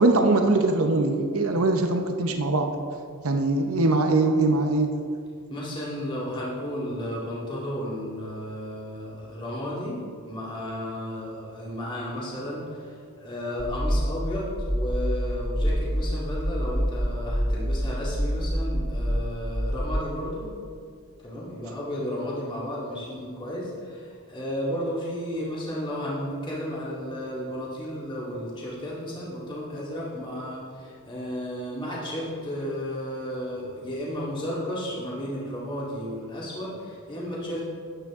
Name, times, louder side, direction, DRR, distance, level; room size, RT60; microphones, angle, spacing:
voice 1, 0.0-2.7 3.2-4.9, right 2 dB, 70° right, 5 dB, 0.8 m, -22 dB
voice 2, 5.5-20.5 21.2-37.6, equal, 20° left, -6 dB, 2.1 m, -33 dB
sound 1, 13.6-20.0, equal, ahead, 0.4 m, -27 dB
13.5 x 9.1 x 3.7 m, 2.2 s
head